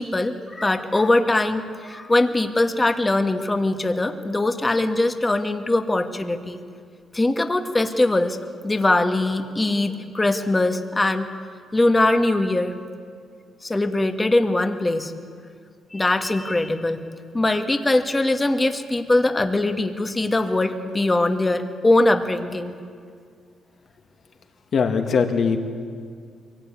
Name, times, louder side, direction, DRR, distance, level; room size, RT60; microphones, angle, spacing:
voice 1, 0.0-6.6 7.1-8.4 8.6-11.3 11.7-12.7 13.6-15.1 15.9-17.0 17.3-22.7, left 2 dB, 20° left, 6 dB, 1.7 m, -21 dB
voice 2, 24.7-25.6, left 5 dB, 55° left, 4 dB, 2.4 m, -20 dB
23.0 x 18.0 x 9.4 m, 2.1 s
cardioid pair, 90°, 0 cm